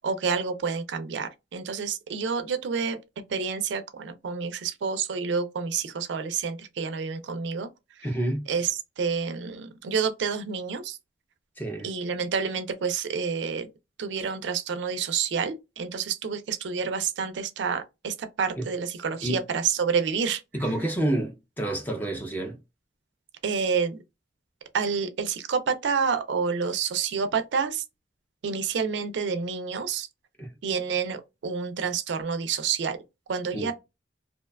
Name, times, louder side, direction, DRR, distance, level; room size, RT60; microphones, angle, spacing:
voice 1, 0.0-3.0 3.3-7.7 8.5-11.0 11.8-13.7 14.0-20.4 23.4-24.0 24.7-27.8 28.4-30.1 30.6-33.0 33.3-33.7, right 6 dB, 80° right, 0.4 m, -28 dB
voice 2, 8.0-8.4 11.6-11.9 18.6-18.7 19.2-19.4 20.5-22.6 30.4-30.5 33.5-33.7, right 1 dB, 10° left, 0.5 m, -29 dB
2.6 x 2.2 x 2.2 m
head